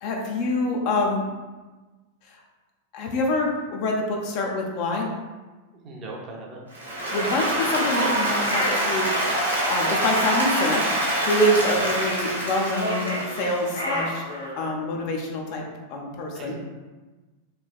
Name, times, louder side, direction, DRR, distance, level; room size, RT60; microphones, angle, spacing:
voice 1, 0.0-1.2 2.9-5.1 7.1-9.1 9.7-10.8 11.3-14.2 14.6-15.6 15.9-16.5, left 1 dB, 45° left, 0 dB, 0.5 m, -25 dB
voice 2, 5.8-6.6 11.7-11.8 16.3-16.5, right 2 dB, 30° right, -2 dB, 0.6 m, -38 dB
Applause, 6.7-13.9, right 1 dB, 80° right, 0.7 m, -25 dB
sound 1, 7.0-9.5 12.6-14.8, equal, 80° left, 1.1 m, -31 dB
3.1 x 3.0 x 2.3 m, 1.2 s
figure-of-eight pair, 90°, 0 cm